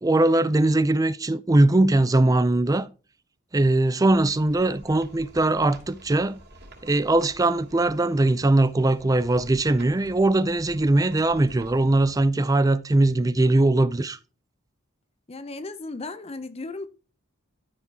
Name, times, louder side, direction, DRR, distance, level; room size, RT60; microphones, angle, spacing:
voice 1, 0.0-2.9 3.5-6.4 6.8-14.2, right 2 dB, 15° right, 0.4 m, -21 dB
sound 1, 4.1-12.2, right 1 dB, 50° right, 3.3 m, -49 dB
voice 2, 15.3-16.9, left 3 dB, 30° left, 0.6 m, -35 dB
13.0 x 5.9 x 2.8 m
head